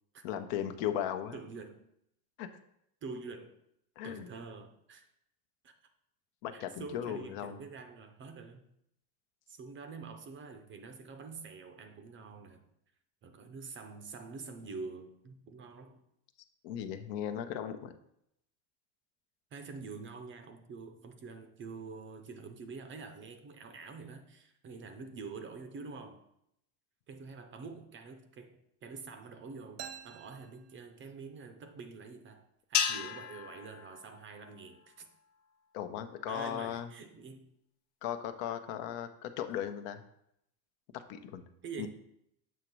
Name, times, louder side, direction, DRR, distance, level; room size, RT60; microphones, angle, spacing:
voice 1, 0.2-1.4 2.4-2.5 4.0-4.3 6.4-7.6 16.6-17.9 35.7-36.9 38.0-40.0 40.9-41.4 41.8-41.9, left 10 dB, 70° left, 8 dB, 0.8 m, -37 dB
voice 2, 1.3-1.8 3.0-3.6 4.0-5.1 5.6-5.7 6.5-8.7 9.5-12.7 13.2-16.0 19.5-26.2 27.1-35.1 36.3-37.5 41.6-41.9, right 4 dB, 30° right, 7 dB, 0.5 m, -46 dB
sound 1, 29.8-31.5, right 9 dB, 65° right, 0.7 m, -49 dB
sound 2, 32.7-35.2, left 8 dB, 45° left, 0.5 m, -35 dB
7.3 x 3.0 x 6.1 m, 0.76 s
cardioid pair, 145°, 45 cm